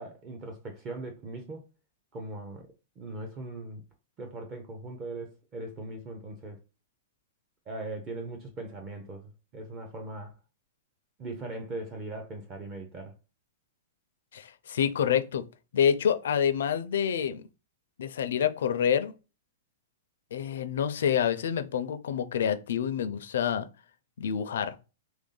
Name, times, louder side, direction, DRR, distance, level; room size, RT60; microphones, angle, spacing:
voice 1, 0.0-1.7 2.1-2.7 3.0-3.8 4.2-6.6 7.7-10.3 11.2-13.1, right 2 dB, 20° right, 0.5 m, -39 dB
voice 2, 14.3-15.4 15.7-17.4 18.0-19.1 20.3-23.6 24.2-24.8, left 8 dB, 70° left, 0.5 m, -27 dB
3.3 x 2.6 x 3.7 m
supercardioid pair, 175°, 0 cm